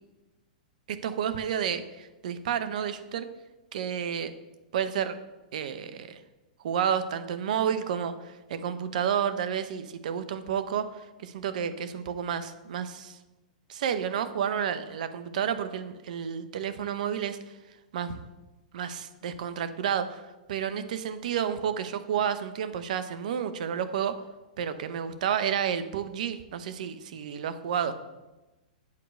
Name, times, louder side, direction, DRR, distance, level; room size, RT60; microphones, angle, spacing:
voice 1, 0.9-3.3 3.7-4.3 4.7-5.1 5.5-6.2 6.6-13.2 13.7-17.4 17.9-18.2 18.7-20.2 20.5-24.2 24.6-27.9, right 8 dB, 65° right, 11 dB, 0.8 m, -30 dB
8.4 x 4.7 x 6.5 m, 1.1 s
hypercardioid pair, 115°, 4 cm